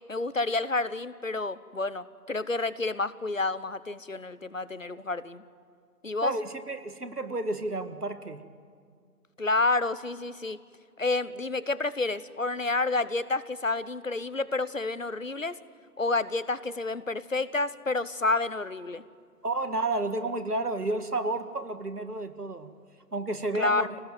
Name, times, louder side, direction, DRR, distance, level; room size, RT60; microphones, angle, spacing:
voice 1, 0.1-5.4 6.0-6.3 9.4-10.6 11.0-15.6 16.0-19.0 23.6-23.9, left 3 dB, 55° left, 17 dB, 0.9 m, -29 dB
voice 2, 6.2-8.4 19.4-22.7 23.1-24.0, right 2 dB, 70° right, 9 dB, 2.0 m, -31 dB
25.0 x 18.5 x 9.4 m, 2.1 s
figure-of-eight pair, 180°, 48 cm